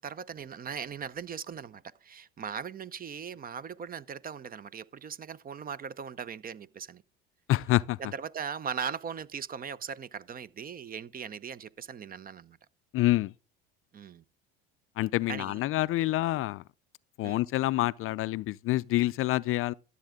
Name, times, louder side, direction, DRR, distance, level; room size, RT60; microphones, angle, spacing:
voice 1, 0.0-7.0 8.0-12.6 13.9-14.2 15.3-15.6 17.2-17.4, right 7 dB, 30° right, 0.6 m, -39 dB
voice 2, 7.5-8.0 12.9-13.3 15.0-16.6 17.2-19.7, left 16 dB, 45° left, 0.4 m, -27 dB
12.5 x 8.1 x 3.6 m
supercardioid pair, 90°, 30 cm